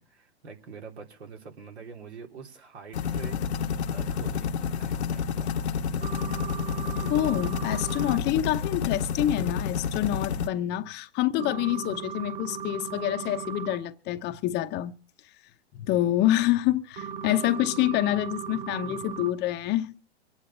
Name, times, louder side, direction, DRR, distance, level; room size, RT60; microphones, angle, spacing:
voice 1, 0.0-3.6 3.9-5.5 10.1-11.0, right 5 dB, 80° right, 3.5 m, -46 dB
sound 1, 2.9-10.5, left 6 dB, 80° left, 1.3 m, -29 dB
sound 2, 6.0-8.2 11.4-13.7 17.0-19.3, right 6 dB, 55° right, 4.6 m, -37 dB
voice 2, 7.0-14.9 15.7-19.9, left 14 dB, 30° left, 0.8 m, -27 dB
24.0 x 9.7 x 4.3 m
hypercardioid pair, 120°, 33 cm